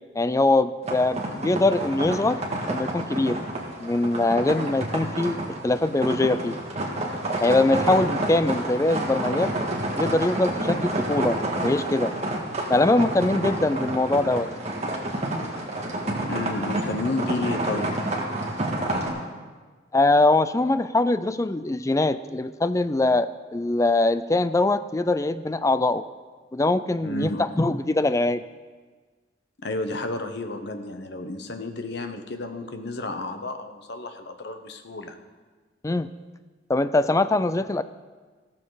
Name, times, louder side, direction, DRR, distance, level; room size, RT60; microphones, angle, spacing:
voice 1, 0.2-2.4 2.7-3.4 3.8-6.6 7.4-9.5 10.0-12.1 12.7-14.5 19.9-26.0 26.5-28.4 35.8-36.1 36.7-37.8, left 2 dB, 15° left, 13 dB, 0.4 m, -22 dB
sound 1, 0.8-19.1, right 1 dB, 35° right, 1.9 m, -29 dB
voice 2, 16.3-18.1 27.0-27.5 29.6-35.3, left 2 dB, 60° left, 7 dB, 1.0 m, -31 dB
15.0 x 13.5 x 4.0 m, 1.4 s
head